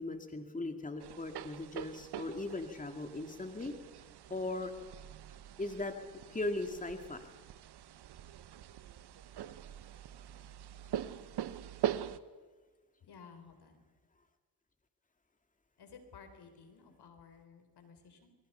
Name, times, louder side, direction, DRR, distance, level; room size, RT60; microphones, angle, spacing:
voice 1, 0.0-3.7 4.3-4.7 5.6-5.9 6.3-7.2, left 2 dB, 20° left, 5 dB, 2.4 m, -38 dB
sound 1, 1.0-12.2, right 10 dB, 65° right, 1.1 m, -43 dB
voice 2, 13.0-13.8 15.8-18.3, left 5 dB, 65° left, 7 dB, 4.3 m, -55 dB
27.0 x 23.0 x 5.7 m, 1.4 s
supercardioid pair, 65°, 42 cm